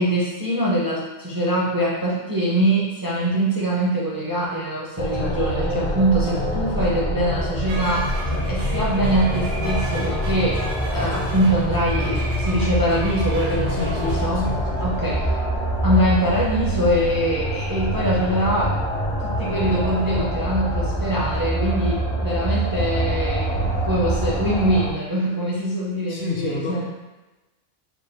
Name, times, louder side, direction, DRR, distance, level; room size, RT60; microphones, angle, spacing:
voice 1, 0.0-8.1 8.5-10.7 10.9-14.5 14.8-15.3 15.8-18.8 19.2-26.9, right 1 dB, 30° right, -5 dB, 0.4 m, -23 dB
sound 1, 5.0-24.9, equal, 40° left, 0.5 m, -25 dB
sound 2, 7.7-14.3, right 2 dB, 70° right, 1.0 m, -35 dB
voice 2, 8.3-8.6 13.7-15.0 26.1-26.9, left 4 dB, 60° left, -1 dB, 0.9 m, -31 dB
4.5 x 2.3 x 3.4 m, 1.1 s
omnidirectional pair, 1.3 m